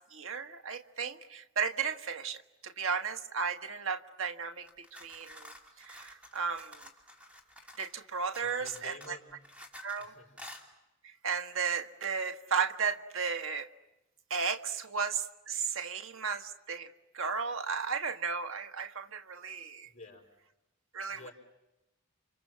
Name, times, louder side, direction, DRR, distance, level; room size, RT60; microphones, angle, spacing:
voice 1, 0.1-5.5 5.8-6.8 7.8-9.2 9.8-10.1 11.0-13.7 14.3-19.9 20.9-21.3, right 6 dB, 80° right, 7 dB, 1.5 m, -34 dB
sound 1, 4.6-8.0 8.3-10.1 10.4-10.6, left 1 dB, 5° right, 2.7 m, -50 dB
voice 2, 8.4-9.4 10.0-10.4 19.8-20.3 21.1-21.3, left 3 dB, 35° left, 3 dB, 4.9 m, -51 dB
29.5 x 26.0 x 7.5 m, 0.96 s
head